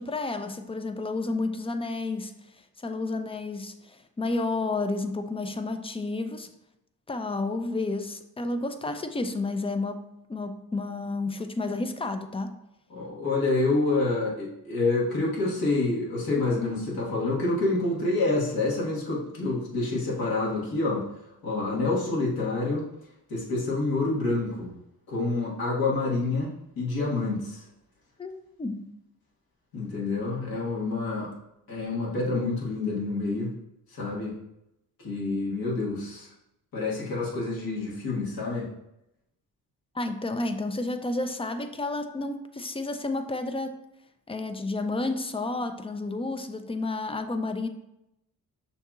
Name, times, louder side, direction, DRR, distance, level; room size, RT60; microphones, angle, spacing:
voice 1, 0.0-2.3 2.8-6.5 7.1-10.0 10.3-12.6 28.2-28.9 39.9-43.7 44.3-47.7, left 2 dB, 15° left, 8 dB, 0.3 m, -31 dB
voice 2, 12.9-21.1 21.4-22.9 23.3-24.7 25.1-27.6 29.7-31.3 31.7-33.5 33.9-34.4 35.0-36.3 36.7-38.7, left 3 dB, 65° left, -5 dB, 1.6 m, -27 dB
6.4 x 2.8 x 2.4 m, 0.84 s
cardioid pair, 70°, 39 cm